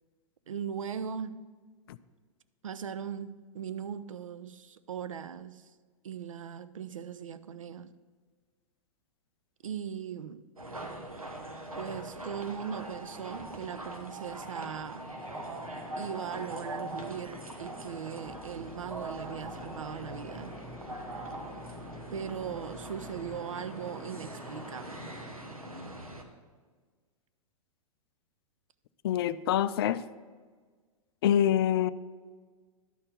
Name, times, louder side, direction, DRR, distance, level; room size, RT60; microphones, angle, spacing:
voice 1, 0.5-1.4 2.6-5.7 6.0-7.9 9.6-10.4 11.8-15.0 16.0-20.6 22.1-25.1, right 8 dB, 70° right, 0.5 m, -39 dB
sound 1, 10.6-26.2, right 1 dB, 85° right, 1.1 m, -42 dB
sound 2, 15.2-25.7, left 2 dB, 10° left, 1.2 m, -49 dB
sound 3, 18.2-23.4, left 2 dB, 45° right, 2.1 m, -53 dB
voice 2, 29.0-30.0 31.2-31.9, left 10 dB, 45° left, 0.4 m, -25 dB
11.0 x 4.4 x 7.1 m
figure-of-eight pair, 105°, 18 cm